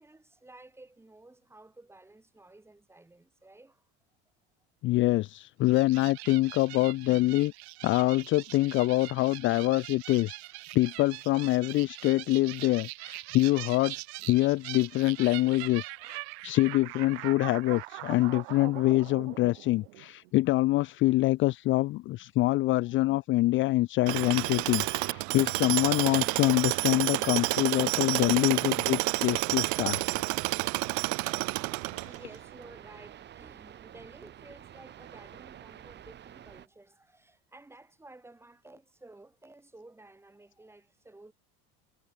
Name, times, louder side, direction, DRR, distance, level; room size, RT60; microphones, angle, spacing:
voice 1, 0.0-3.9 15.9-16.0 19.5-19.7 22.8-22.9 29.1-41.3, right 2 dB, 10° right, 5.8 m, -54 dB
voice 2, 4.8-7.5 7.8-10.4 10.7-14.0 14.3-30.0 31.9-32.1, left 18 dB, 40° left, 0.4 m, -25 dB
sound 1, 5.6-20.3, right 26 dB, 90° right, 2.1 m, -42 dB
Tools, 24.1-32.4, right 31 dB, 65° right, 0.7 m, -29 dB
sound 2, 28.8-36.7, right 10 dB, 35° right, 1.5 m, -50 dB
cardioid pair, 135°, 31 cm